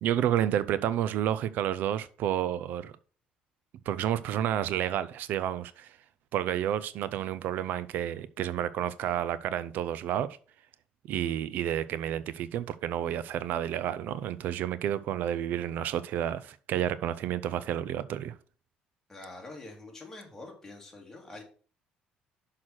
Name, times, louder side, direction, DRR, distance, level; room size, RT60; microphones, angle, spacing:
voice 1, 0.0-2.9 3.9-6.0 6.3-10.4 11.1-18.3, right 10 dB, 70° right, 0.5 m, -30 dB
voice 2, 19.1-21.4, left 2 dB, 15° left, 2.8 m, -45 dB
6.3 x 5.8 x 6.2 m
cardioid pair, 130°, 3 cm